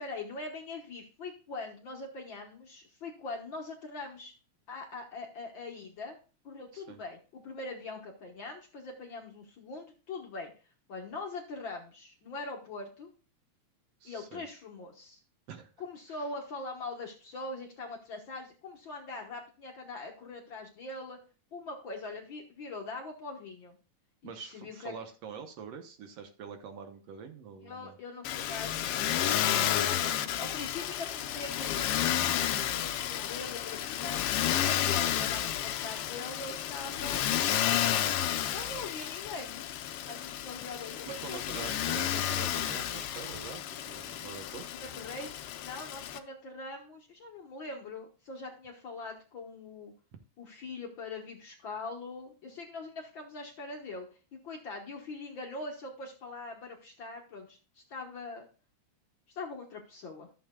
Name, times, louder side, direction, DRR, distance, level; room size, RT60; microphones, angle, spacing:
voice 1, 0.0-4.3 4.7-6.2 6.4-10.5 10.9-13.1 14.0-15.2 15.8-21.2 21.5-23.8 24.2-24.9 27.6-37.2 37.7-39.7 40.0-42.2 44.7-49.9 50.4-54.1 54.4-58.4 59.3-60.3, left 3 dB, 55° left, 1 dB, 1.5 m, -42 dB
voice 2, 14.0-14.4 15.5-15.7 16.1-16.2 24.2-28.0 29.5-29.8 41.1-44.7, right 6 dB, 70° right, 7 dB, 1.9 m, -45 dB
Motor vehicle (road), 28.2-46.2, left 11 dB, 80° left, 1.3 m, -31 dB
13.5 x 7.1 x 2.3 m, 0.35 s
omnidirectional pair, 3.3 m